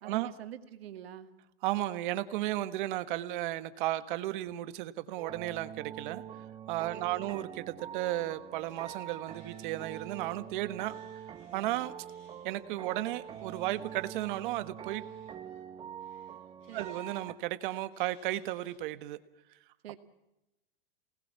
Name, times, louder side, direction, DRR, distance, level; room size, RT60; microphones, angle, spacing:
voice 1, 0.0-1.3 6.9-7.3 16.7-17.0 19.8-20.0, right 10 dB, 80° right, 8 dB, 2.3 m, -45 dB
voice 2, 1.6-6.2 6.7-10.9 11.5-11.9 12.4-15.0 16.7-19.2, right 15 dB, 55° right, 12 dB, 1.5 m, -34 dB
sound 1, 5.2-17.3, right 9 dB, 15° right, 1.0 m, -45 dB
sound 2, 8.0-8.3 8.6-10.3 10.8-11.7 12.0-15.7 16.0-17.2 17.9-18.8, left 4 dB, 50° left, 7.1 m, -66 dB
28.0 x 19.5 x 7.2 m, 0.91 s
supercardioid pair, 145°, 30 cm